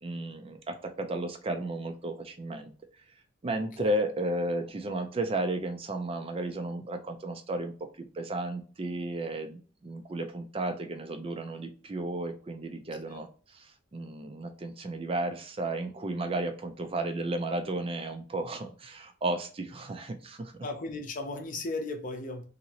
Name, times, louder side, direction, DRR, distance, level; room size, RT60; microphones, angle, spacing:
voice 1, 0.0-2.7 3.4-13.3 13.5-20.5, right 1 dB, 30° right, 0.4 m, -33 dB
voice 2, 20.6-22.4, left 2 dB, 40° left, 0.6 m, -36 dB
2.9 x 2.7 x 2.8 m
head